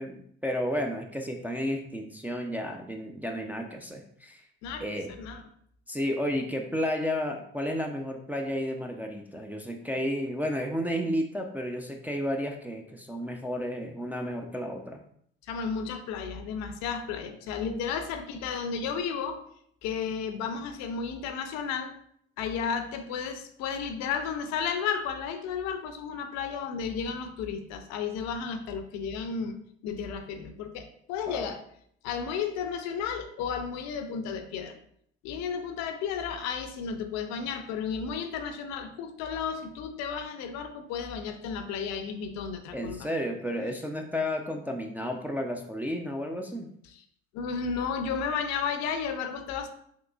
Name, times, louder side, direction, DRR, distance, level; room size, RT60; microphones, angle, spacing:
voice 1, 0.0-4.4 4.8-5.1 5.9-15.0 31.3-31.5 42.7-46.7, equal, 5° right, 2 dB, 0.3 m, -32 dB
voice 2, 4.6-5.4 15.5-19.4 19.8-21.9 22.4-29.5 29.8-31.6 32.0-34.8 35.2-43.1 46.9-47.0 47.3-49.7, left 6 dB, 65° left, 8 dB, 0.5 m, -33 dB
3.7 x 2.8 x 2.3 m, 0.67 s
hypercardioid pair, 70°, 30 cm